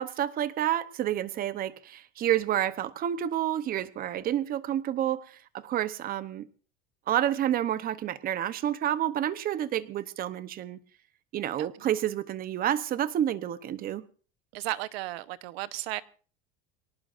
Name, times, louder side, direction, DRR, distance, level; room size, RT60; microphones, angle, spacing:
voice 1, 0.0-5.2 5.6-6.5 7.1-10.8 11.3-14.0, right 11 dB, 30° right, 0.9 m, -29 dB
voice 2, 14.5-16.0, right 17 dB, 90° right, 1.1 m, -35 dB
23.5 x 18.5 x 2.6 m
cardioid pair, 165°, 29 cm